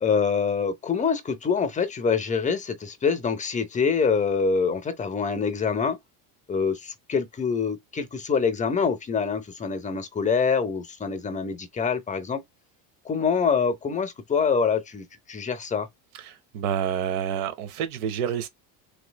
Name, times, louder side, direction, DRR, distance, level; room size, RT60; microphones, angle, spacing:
voice 1, 0.0-6.0 6.5-12.4 13.1-15.9, left 5 dB, 20° left, 0.5 m, -25 dB
voice 2, 16.1-18.5, right 9 dB, 90° right, 0.9 m, -28 dB
3.2 x 3.1 x 2.2 m
supercardioid pair, 120°, 43 cm